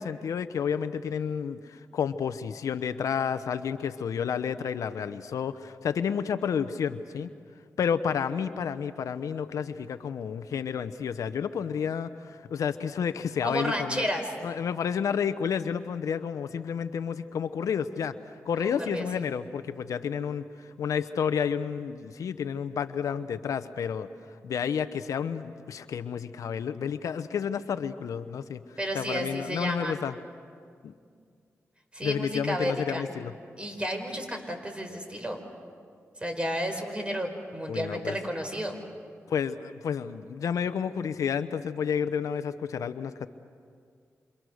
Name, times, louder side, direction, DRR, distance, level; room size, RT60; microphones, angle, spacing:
voice 1, 0.0-7.3 7.8-14.1 14.4-18.1 18.4-24.1 24.4-28.6 28.9-30.1 30.8-30.9 32.0-33.3 37.7-38.2 39.3-43.3, left 7 dB, 85° left, 12 dB, 0.8 m, -30 dB
voice 2, 13.4-14.3 18.6-19.2 28.8-30.0 31.9-33.0 33.6-35.4 36.2-38.7, equal, 20° right, 4 dB, 5.1 m, -32 dB
28.0 x 28.0 x 6.5 m, 2.2 s
cardioid pair, 55°, 6 cm